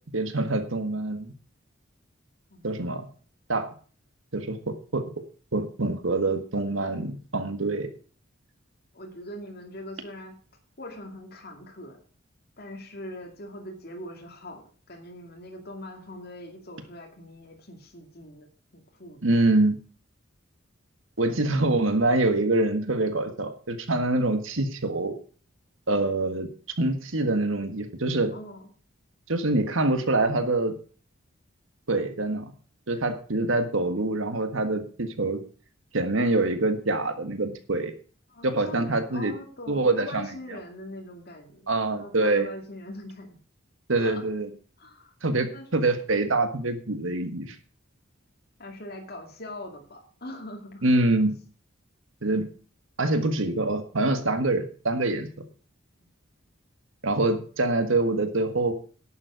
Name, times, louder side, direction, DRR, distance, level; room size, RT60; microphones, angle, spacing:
voice 1, 0.1-1.3 2.6-3.0 3.5-3.7 4.3-5.0 5.5-7.9 19.2-19.8 21.2-25.1 25.9-26.5 26.8-28.3 29.3-30.8 31.9-32.5 32.9-35.4 35.9-37.9 38.4-39.3 39.7-40.6 41.7-42.5 43.9-44.5 45.2-47.6 50.8-51.3 52.2-52.5 53.0-55.3 57.0-58.7, right 2 dB, 75° right, 8 dB, 1.6 m, -25 dB
voice 2, 8.9-10.3 10.8-12.0 12.6-18.5 18.7-19.2 28.3-28.7 38.3-41.6 41.9-43.4 44.0-44.2 44.8-45.1 45.5-45.7 48.6-50.8, left 1 dB, 50° left, 1 dB, 2.3 m, -42 dB
11.5 x 7.5 x 6.3 m, 0.41 s
head